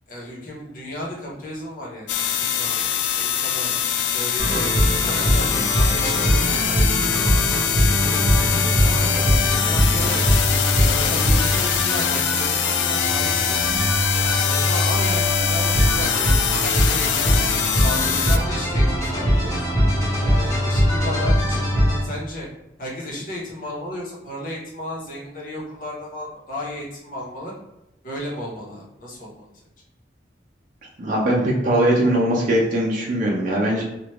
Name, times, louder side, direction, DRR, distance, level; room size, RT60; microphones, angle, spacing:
voice 1, 0.1-2.8 3.1-3.8 4.1-7.2 7.7-9.0 9.4-10.2 10.8-13.6 14.2-17.4 17.7-19.7 20.2-21.7 22.0-22.5 22.8-27.5 28.0-29.4, left 1 dB, 45° left, -5 dB, 1.0 m, -34 dB
sound 1, 2.1-18.4, left 9 dB, 75° left, 0.3 m, -23 dB
sound 2, 4.4-22.0, equal, 15° left, 1.0 m, -21 dB
voice 2, 31.0-33.8, right 1 dB, 45° right, -4 dB, 0.6 m, -20 dB
3.2 x 2.4 x 3.1 m, 0.93 s
head